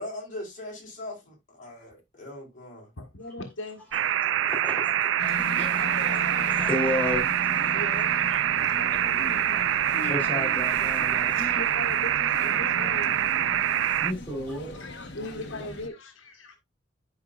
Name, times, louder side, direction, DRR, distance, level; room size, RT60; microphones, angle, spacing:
voice 1, 0.0-2.9, left 1 dB, 40° left, 3.8 m, -40 dB
voice 2, 3.0-3.8 7.7-8.4 11.3-13.2 14.7-16.6, left 1 dB, 80° left, 1.4 m, -39 dB
sound 1, 3.9-14.1, right 10 dB, 75° right, 0.4 m, -25 dB
voice 3, 4.5-7.3 7.7-7.8 8.8-9.0 9.2-11.6 14.0-14.9, left 1 dB, 10° left, 4.0 m, -34 dB
sound 2, 5.2-15.9, left 2 dB, 60° left, 1.4 m, -39 dB
11.5 x 5.1 x 2.5 m
head